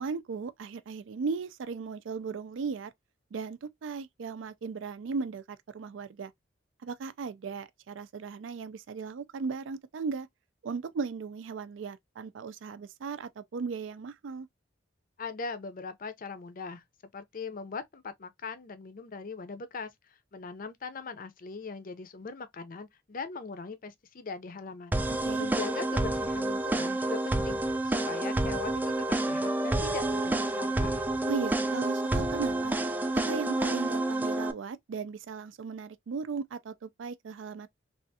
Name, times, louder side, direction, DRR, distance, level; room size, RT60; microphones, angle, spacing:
voice 1, 0.0-2.9 3.3-6.3 6.8-10.3 10.6-14.5 25.1-25.5 31.3-32.8 33.3-37.7, right 5 dB, 80° right, 0.4 m, -36 dB
voice 2, 15.2-16.8 17.1-19.9 20.3-31.0, left 4 dB, 45° left, 0.5 m, -40 dB
sound 1, 24.9-34.5, right 2 dB, 10° right, 0.3 m, -29 dB
3.4 x 2.4 x 2.6 m
head